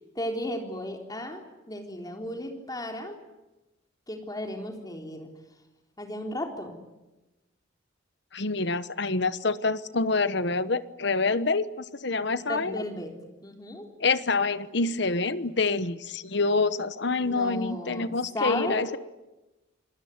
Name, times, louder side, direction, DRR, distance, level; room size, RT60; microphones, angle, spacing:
voice 1, 0.2-3.2 4.1-5.3 6.0-6.8 12.5-13.1 13.4-13.9 17.2-18.1 18.3-18.9, left 1 dB, 20° left, 4 dB, 3.8 m, -34 dB
voice 2, 8.3-12.8 14.0-19.0, left 3 dB, 55° left, 15 dB, 1.1 m, -27 dB
27.5 x 20.0 x 9.6 m, 1.1 s
head